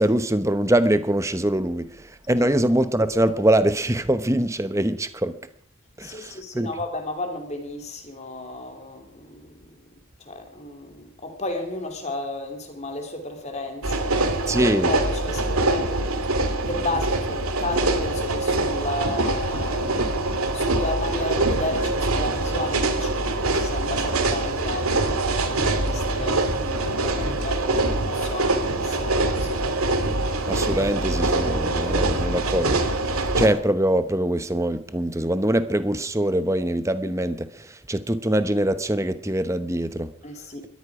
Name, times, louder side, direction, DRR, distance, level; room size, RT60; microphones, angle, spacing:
voice 1, 0.0-5.4 6.0-6.7 14.5-14.9 30.5-40.1, right 1 dB, 15° right, 0.9 m, -23 dB
voice 2, 6.0-9.7 10.2-16.1 16.4-29.6 40.2-40.7, left 2 dB, 30° left, 3.0 m, -33 dB
sound 1, 13.8-33.5, right 2 dB, 85° right, 2.2 m, -24 dB
21.5 x 14.0 x 4.9 m
head